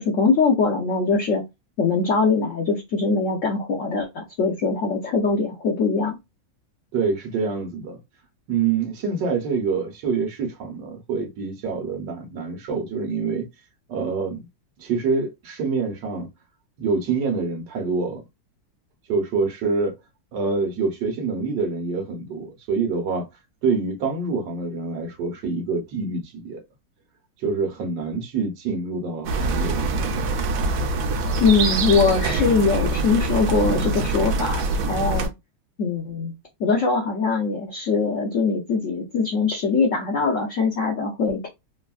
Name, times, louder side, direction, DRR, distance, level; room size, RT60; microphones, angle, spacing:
voice 1, 0.0-1.4 1.8-6.2 31.4-35.3 35.8-36.3 36.6-41.5, left 4 dB, 75° left, 0.7 m, -22 dB
voice 2, 6.9-8.0 8.5-13.5 13.9-14.5 14.8-16.3 16.8-18.2 19.1-19.9 20.3-23.3 23.6-26.6 27.4-30.1, right 4 dB, 70° right, 1.4 m, -26 dB
sound 1, 29.2-35.3, right 2 dB, 90° right, 0.7 m, -24 dB
3.4 x 2.2 x 2.3 m
omnidirectional pair, 2.1 m